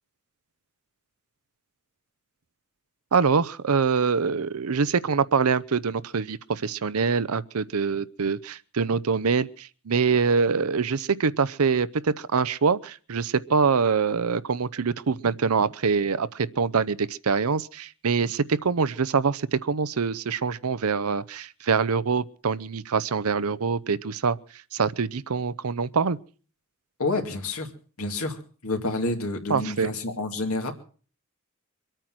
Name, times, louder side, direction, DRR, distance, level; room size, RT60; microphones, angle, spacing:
voice 1, 3.1-24.4 24.7-26.2 29.5-29.9, right 5 dB, 85° right, 0.7 m, -24 dB
voice 2, 27.0-27.7 28.0-30.7, left 2 dB, 80° left, 2.5 m, -29 dB
24.0 x 9.1 x 6.0 m
head